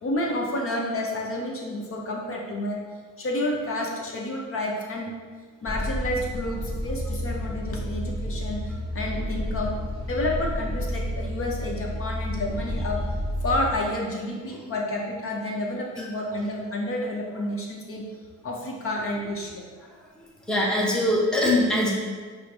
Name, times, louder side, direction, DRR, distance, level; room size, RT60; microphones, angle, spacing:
voice 1, 0.0-2.8 3.2-5.1 5.6-8.6 8.9-9.8 10.1-13.0 13.4-18.0 18.4-19.6, left 1 dB, 45° left, -1 dB, 0.8 m, -30 dB
sound 1, 5.7-13.7, equal, 30° left, 1.4 m, -30 dB
voice 2, 20.2-21.9, left 1 dB, 5° left, -3 dB, 0.7 m, -23 dB
4.8 x 2.0 x 4.6 m, 1.5 s
cardioid pair, 90°, 30 cm